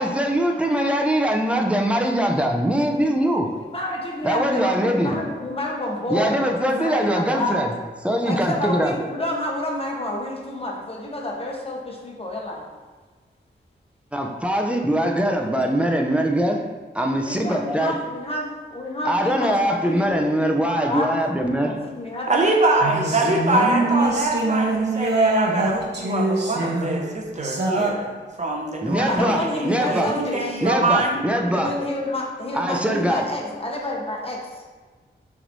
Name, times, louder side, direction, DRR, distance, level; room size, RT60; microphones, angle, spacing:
voice 1, 0.0-3.5 4.2-5.1 6.1-7.7 8.0-8.9 14.1-16.6 16.9-18.0 19.0-21.8 28.8-30.1 30.6-31.7 32.5-33.3, equal, 5° right, 2 dB, 0.5 m, -22 dB
voice 2, 3.5-7.7 8.2-12.7 17.2-21.2 21.7-22.4 23.3-24.1 29.1-30.6 31.5-34.6, left 1 dB, 30° left, -2 dB, 1.0 m, -29 dB
voice 3, 22.3-28.1 28.4-31.2, right 2 dB, 40° right, 0 dB, 0.9 m, -24 dB
sound 1, 22.8-27.9, right 2 dB, 65° right, 0.8 m, -24 dB
6.1 x 3.2 x 2.6 m, 1.4 s
wide cardioid pair, 80°, 19 cm